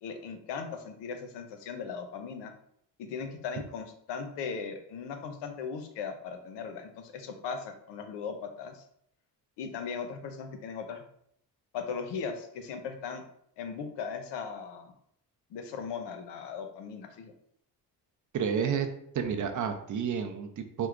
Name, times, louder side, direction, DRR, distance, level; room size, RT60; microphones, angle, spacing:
voice 1, 0.0-2.5 3.0-8.8 9.6-11.0 11.7-13.2 13.6-14.9 15.5-17.3, left 6 dB, 90° left, 6 dB, 0.6 m, -38 dB
voice 2, 18.3-18.9 19.1-20.9, right 7 dB, 50° right, 6 dB, 0.5 m, -30 dB
4.4 x 2.0 x 2.4 m, 0.70 s
cardioid pair, 90°, 41 cm